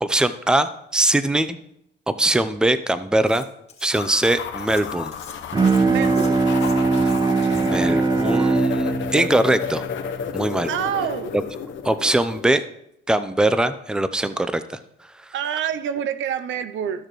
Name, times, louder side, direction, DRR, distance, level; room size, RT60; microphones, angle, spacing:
voice 1, 0.0-1.6 2.2-3.4 3.8-5.1 7.0-7.1 7.5-9.8 10.3-10.7 11.3-11.4 11.8-12.6 13.1-14.6, right 1 dB, 5° right, 12 dB, 0.5 m, -21 dB
Cutlery silverware, 3.2-3.9 4.2-8.0, left 5 dB, 30° left, 2.0 m, -44 dB
sound 1, 3.9-12.5, left 8 dB, 70° left, 0.9 m, -32 dB
Bowed string instrument, 5.5-11.0, right 4 dB, 20° right, 0.9 m, -21 dB
voice 2, 5.9-6.5 10.7-11.3 15.3-17.1, right 9 dB, 75° right, 12 dB, 0.6 m, -27 dB
13.5 x 6.6 x 3.1 m, 0.77 s
cardioid pair, 90°, 20 cm